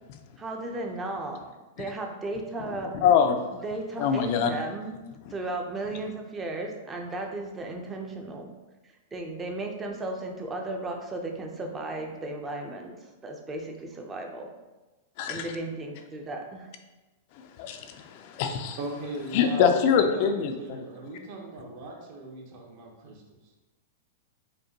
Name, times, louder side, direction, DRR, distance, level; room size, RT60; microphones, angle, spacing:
voice 1, 0.4-1.4 1.8-3.0 3.5-5.0 5.3-8.5 9.1-12.9 13.2-14.5 15.3-16.7, right 2 dB, 15° right, 2 dB, 0.5 m, -35 dB
voice 2, 3.0-3.4 4.0-4.5 15.2-15.5 17.6-18.8 19.3-20.8, left 7 dB, 50° left, 6 dB, 0.4 m, -24 dB
voice 3, 18.8-23.4, right 1 dB, 50° right, 0 dB, 0.9 m, -38 dB
5.1 x 2.2 x 2.8 m, 1.1 s
hypercardioid pair, 135°, 0 cm